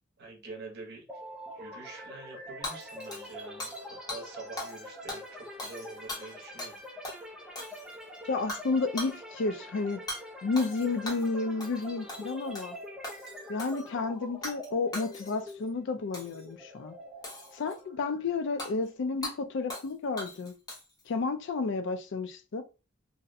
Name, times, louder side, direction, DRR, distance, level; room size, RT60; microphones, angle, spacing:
voice 1, 0.2-1.0 1.5-6.8, right 3 dB, 55° right, 0.7 m, -46 dB
sound 1, 1.1-18.8, equal, 5° right, 0.4 m, -45 dB
Hammer / Shatter, 2.6-3.8 4.1-4.2 4.6-4.8 5.1-6.8 7.0-7.2 7.6-8.0 8.5-8.7 9.0-9.2 10.1-10.2 10.6-11.3 11.6-11.8 12.1-12.7 13.0-13.8 14.4-14.7 14.9-15.5 16.1-16.4 17.2-17.8 18.6-18.7 19.2-19.4 19.7-19.9 20.2-21.0, left 1 dB, 20° left, 0.8 m, -39 dB
voice 2, 8.3-10.0 10.4-12.8 13.5-16.9 17.5-20.5 21.1-22.6, left 4 dB, 60° left, 0.4 m, -31 dB
2.6 x 2.0 x 2.6 m
head